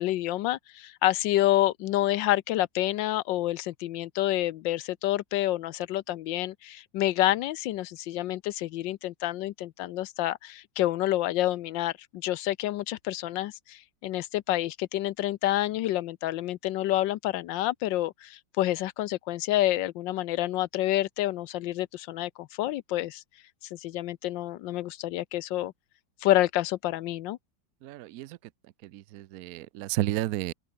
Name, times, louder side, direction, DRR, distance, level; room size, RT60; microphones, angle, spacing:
voice 1, 0.0-23.2 23.7-25.7 26.2-27.4, left 14 dB, 75° left, 1.3 m, -28 dB
voice 2, 27.8-28.3 28.9-30.5, right 15 dB, 70° right, 0.8 m, -31 dB
open air
omnidirectional pair, 2.0 m